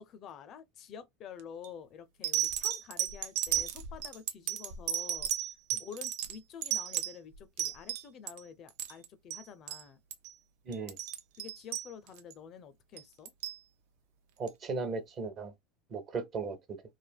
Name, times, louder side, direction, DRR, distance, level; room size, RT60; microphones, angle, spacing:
voice 1, 0.0-5.3 5.8-10.0 11.4-13.3, left 7 dB, 35° left, 0.4 m, -49 dB
sound 1, 1.4-1.7 2.2-8.4 8.7-9.1 9.3-9.4 9.7-9.8 10.1-10.3 10.7-12.3 13.0-13.6 14.5-14.6, right 11 dB, 70° right, 0.7 m, -34 dB
voice 2, 10.7-11.0 14.4-15.5 15.9-16.6, right 4 dB, 30° right, 0.7 m, -36 dB
3.2 x 2.5 x 2.2 m
supercardioid pair, 160°, 0 cm